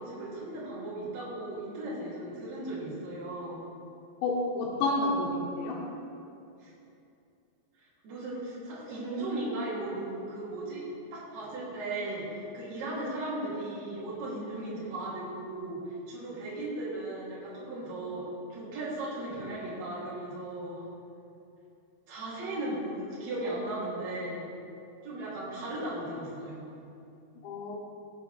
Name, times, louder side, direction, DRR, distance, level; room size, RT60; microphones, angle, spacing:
voice 1, 0.0-3.6 6.6-6.7 7.7-10.8 11.1-18.2 18.5-20.9 22.1-24.5 25.0-26.7, right 1 dB, 45° right, -8 dB, 3.7 m, -36 dB
voice 2, 4.2-5.8 27.4-27.8, left 2 dB, 85° left, -7 dB, 3.5 m, -29 dB
17.0 x 8.9 x 3.3 m, 2.6 s
omnidirectional pair, 5.1 m